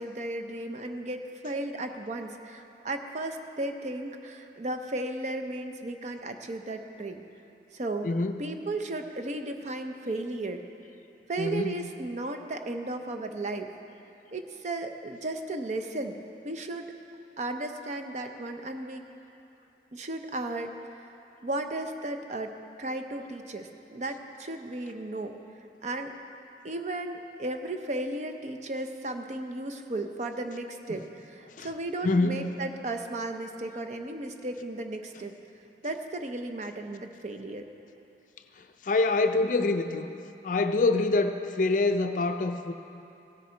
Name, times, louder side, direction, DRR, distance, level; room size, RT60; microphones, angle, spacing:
voice 1, 0.0-7.2 7.7-8.1 8.4-10.6 11.3-13.7 14.3-16.9 17.4-19.0 19.9-20.7 21.0-21.1 21.4-22.5 22.8-25.4 25.8-26.1 26.6-35.4 35.8-37.7, right 2 dB, 40° right, 6 dB, 0.5 m, -35 dB
voice 2, 8.0-8.4 11.4-11.8 31.6-31.7 32.0-32.5 38.8-40.1 40.4-42.7, left 3 dB, 45° left, 8 dB, 0.4 m, -25 dB
16.5 x 6.5 x 4.4 m, 2.9 s
head